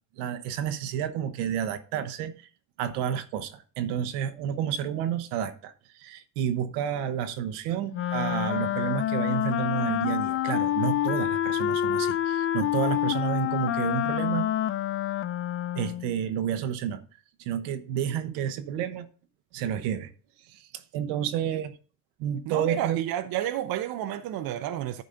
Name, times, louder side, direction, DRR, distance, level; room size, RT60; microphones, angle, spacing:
voice 1, 0.2-2.5 2.8-14.5 15.7-17.0 17.4-19.1 19.5-20.1 20.5-21.7 22.2-23.0, right 9 dB, 85° right, 1.1 m, -30 dB
Wind instrument woodwind instrument, 7.9-16.1, left 11 dB, 35° left, 0.4 m, -27 dB
voice 2, 22.5-25.0, right 12 dB, 65° right, 0.8 m, -31 dB
10.5 x 4.1 x 5.0 m
supercardioid pair, 85°, 39 cm